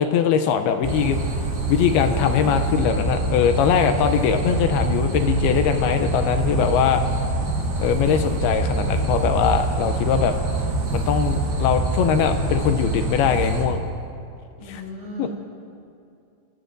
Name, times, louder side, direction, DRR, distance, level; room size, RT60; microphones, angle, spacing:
voice 1, 0.0-1.4 1.7-7.1 7.8-10.3 10.9-13.8 14.7-14.8 15.2-15.3, left 8 dB, 80° left, 7 dB, 2.5 m, -21 dB
sound 1, 0.8-13.6, right 2 dB, 90° right, 5.5 m, -25 dB
voice 2, 14.6-15.3, left 1 dB, 65° right, -10 dB, 6.6 m, -37 dB
29.5 x 16.0 x 2.6 m, 2.5 s
omnidirectional pair, 4.8 m